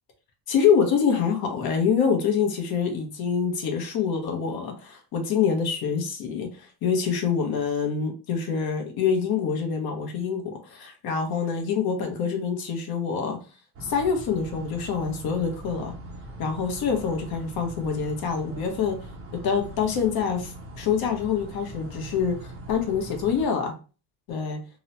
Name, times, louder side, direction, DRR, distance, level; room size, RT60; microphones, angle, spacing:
voice 1, 0.5-13.4 13.8-15.9 16.4-19.0 19.4-23.7 24.3-24.6, left 6 dB, 55° left, 4 dB, 0.7 m, -26 dB
sound 1, 13.7-23.5, right 1 dB, 30° right, 0.4 m, -41 dB
2.9 x 2.0 x 2.7 m, 0.35 s
cardioid pair, 165°, 46 cm